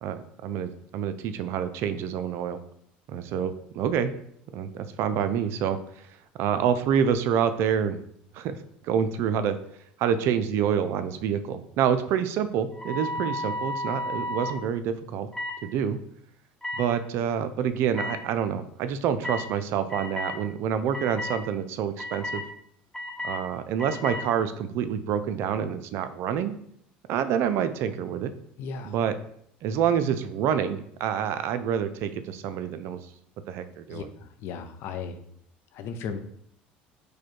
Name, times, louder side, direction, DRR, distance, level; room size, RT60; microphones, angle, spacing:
voice 1, 0.0-2.6 3.1-4.1 4.5-6.1 6.4-8.0 8.3-8.5 8.8-9.6 10.0-15.3 15.6-16.0 16.8-22.4 23.2-26.5 27.1-28.3 28.9-29.1 29.6-33.0 33.5-34.1, right 8 dB, 65° right, 11 dB, 0.4 m, -27 dB
sound 1, 12.7-14.6 15.3-15.6 16.6-16.8 17.9-18.1 19.2-19.4 19.9-20.4 20.9-21.4 22.0-22.4 22.9-23.4 23.8-24.2, left 1 dB, 5° left, 1.2 m, -32 dB
voice 2, 28.6-28.9 33.9-35.2 35.7-36.2, left 5 dB, 60° left, 8 dB, 0.5 m, -36 dB
4.9 x 2.2 x 4.5 m, 0.67 s
supercardioid pair, 85°, 5 cm